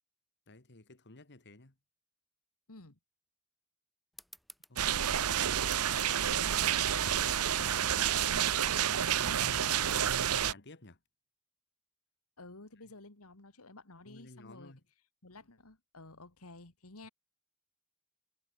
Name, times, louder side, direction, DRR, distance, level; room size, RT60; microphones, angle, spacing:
voice 1, 0.5-1.7 4.7-5.1 5.6-6.8 7.6-11.0 14.1-14.8, left 2 dB, 50° left, 2.3 m, -53 dB
voice 2, 2.7-3.0 12.4-14.7 15.2-17.1, left 2 dB, 75° left, 2.6 m, -52 dB
sound 1, 4.1-9.2, equal, ahead, 2.4 m, -58 dB
sound 2, 4.8-10.5, right 10 dB, 85° right, 0.9 m, -29 dB
head